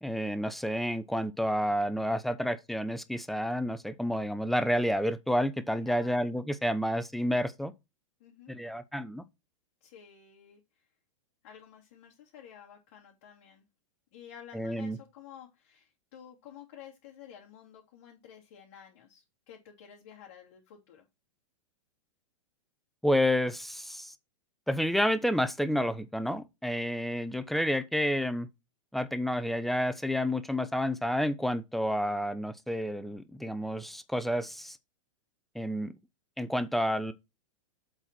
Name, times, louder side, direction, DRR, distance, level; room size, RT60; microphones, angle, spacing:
voice 1, 0.0-7.7 8.5-9.2 14.5-15.0 23.0-24.1 24.7-28.5 28.9-34.8 35.5-35.9 36.4-37.1, equal, ahead, 0.7 m, -30 dB
voice 2, 5.8-6.3 8.2-8.5 9.8-10.6 11.4-13.6 14.1-21.1, left 9 dB, 50° left, 3.0 m, -52 dB
7.9 x 4.5 x 6.0 m
hypercardioid pair, 115°, 17 cm